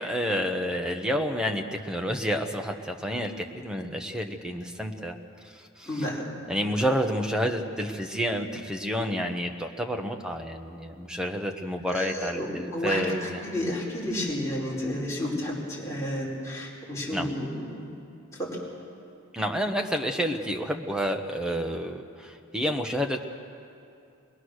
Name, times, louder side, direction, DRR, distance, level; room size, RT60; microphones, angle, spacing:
voice 1, 0.0-5.2 5.5-6.1 6.5-13.5 17.1-17.3 19.3-23.2, equal, 5° right, 3 dB, 1.2 m, -29 dB
voice 2, 5.9-6.2 11.9-17.9 18.4-18.6, left 1 dB, 15° left, -6 dB, 4.6 m, -31 dB
22.0 x 20.5 x 6.5 m, 2.6 s
head